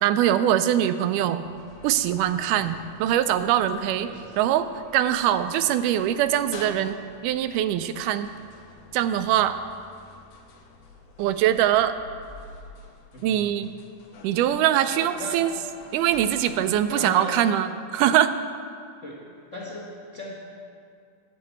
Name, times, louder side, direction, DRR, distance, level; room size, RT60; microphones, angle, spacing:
voice 1, 0.0-1.5 1.8-4.1 4.4-4.7 4.9-7.0 7.2-8.3 8.9-9.6 11.2-12.0 13.2-13.7 14.2-15.5 15.9-18.3, right 11 dB, 85° right, 11 dB, 2.1 m, -22 dB
sound 1, 1.4-16.9, left 3 dB, 65° left, 1.8 m, -49 dB
voice 2, 4.0-4.3 13.1-13.5 14.9-15.5 16.9-17.4 19.0-19.2 19.5-20.3, left 1 dB, 45° left, -4 dB, 0.9 m, -37 dB
11.0 x 5.2 x 8.1 m, 2.3 s
omnidirectional pair, 3.6 m